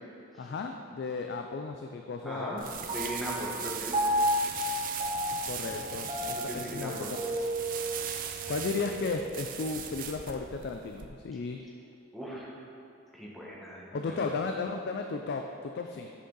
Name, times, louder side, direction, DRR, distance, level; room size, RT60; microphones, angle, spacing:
voice 1, 0.4-2.7 5.5-6.9 8.5-11.6 13.9-16.1, left 4 dB, 55° left, 4 dB, 0.4 m, -34 dB
voice 2, 2.2-2.6 2.9-3.9 6.3-7.1 12.1-12.6 13.1-14.3, equal, ahead, -6 dB, 1.3 m, -39 dB
sound 1, 2.6-11.1, right 8 dB, 45° right, 0.5 m, -39 dB
Piano, 2.9-9.6, equal, 30° right, 0.9 m, -33 dB
7.8 x 6.5 x 3.8 m, 2.8 s
head